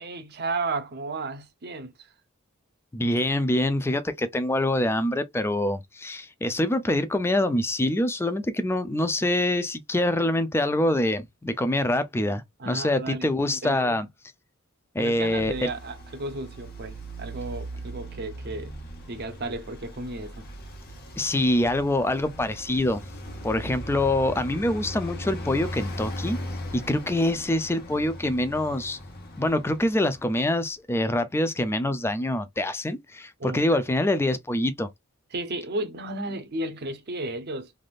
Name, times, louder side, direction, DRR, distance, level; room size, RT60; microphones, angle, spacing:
voice 1, 0.0-2.1 12.6-13.3 13.6-14.0 15.0-18.7 19.1-20.5 33.4-33.8 35.3-37.7, right 2 dB, 50° right, 0.7 m, -33 dB
voice 2, 2.9-14.1 14.9-15.7 21.2-23.0 23.4-26.4 26.7-29.0 29.4-34.9, left 1 dB, 10° left, 0.4 m, -25 dB
Traffic noise roadway noise, 15.1-30.6, equal, 50° left, 1.2 m, -39 dB
3.4 x 2.5 x 2.3 m
head